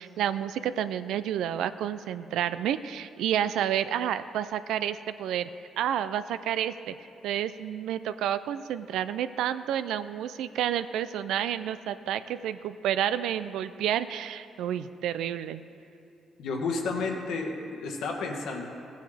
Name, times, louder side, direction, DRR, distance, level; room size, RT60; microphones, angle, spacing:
voice 1, 0.0-5.5 5.8-6.9 7.2-15.7, right 10 dB, 85° right, 13 dB, 0.4 m, -30 dB
voice 2, 16.4-18.6, left 4 dB, 80° left, 1 dB, 1.4 m, -31 dB
15.5 x 9.2 x 3.4 m, 2.7 s
cardioid pair, 90°, 0 cm